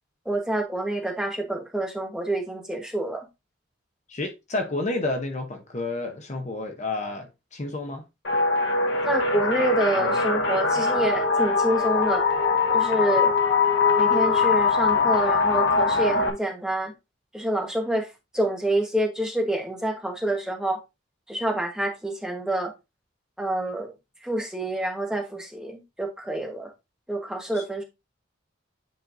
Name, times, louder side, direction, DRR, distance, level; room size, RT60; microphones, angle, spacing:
voice 1, 0.2-3.2 9.0-12.2 12.7-13.3 13.9-16.9 17.3-18.1 18.3-20.8 21.3-22.7 23.4-23.9 24.2-26.7 27.1-27.8, right 1 dB, 5° right, 1.1 m, -27 dB
voice 2, 4.1-8.0 27.5-27.6, left 2 dB, 35° left, 0.7 m, -30 dB
sound 1, 8.2-16.3, left 4 dB, 60° left, 1.4 m, -22 dB
9.2 x 4.3 x 2.6 m
head